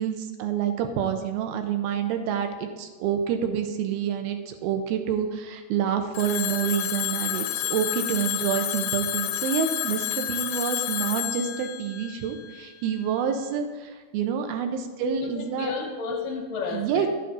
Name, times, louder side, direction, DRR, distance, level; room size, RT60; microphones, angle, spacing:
voice 1, 0.0-15.7 16.7-17.1, right 8 dB, 80° right, 6 dB, 2.5 m, -28 dB
Telephone, 6.1-13.0, left 13 dB, 90° left, 2.6 m, -30 dB
voice 2, 15.1-17.1, left 5 dB, 70° left, 0 dB, 2.5 m, -32 dB
11.0 x 7.7 x 3.9 m, 1.3 s
omnidirectional pair, 4.5 m